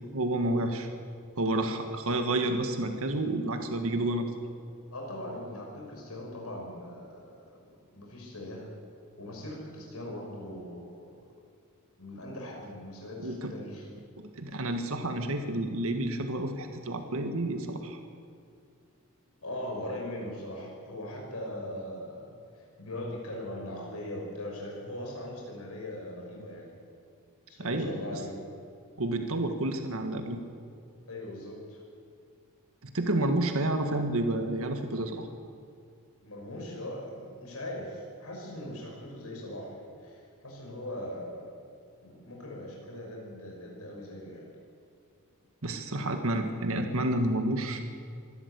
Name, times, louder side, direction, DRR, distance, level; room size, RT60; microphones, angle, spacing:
voice 1, 0.1-0.9 1.4-4.3 13.2-13.5 14.4-18.0 27.6-28.0 29.0-30.4 32.8-35.3 45.6-47.8, right 1 dB, 70° right, 5 dB, 1.8 m, -30 dB
voice 2, 4.9-8.7 9.2-11.2 12.0-13.9 19.4-26.7 27.5-28.4 31.1-31.8 36.2-41.5 42.0-44.5, left 1 dB, 75° left, -1 dB, 6.0 m, -40 dB
25.0 x 13.0 x 8.2 m, 2.4 s
head